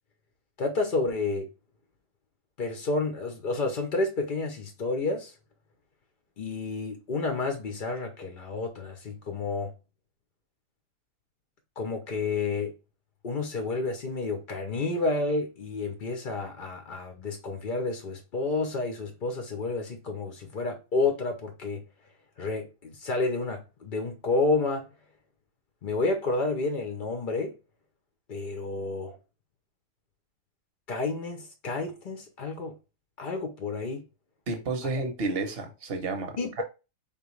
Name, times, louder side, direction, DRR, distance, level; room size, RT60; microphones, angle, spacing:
voice 1, 0.6-1.5 2.6-5.3 6.4-9.7 11.8-12.7 13.2-21.8 22.4-24.9 25.8-27.6 28.3-29.2 30.9-32.8 33.2-34.0 36.4-36.6, left 3 dB, 70° left, 0.4 m, -30 dB
voice 2, 34.5-36.6, right 3 dB, 45° right, 0.9 m, -31 dB
4.4 x 3.0 x 3.1 m
omnidirectional pair, 1.8 m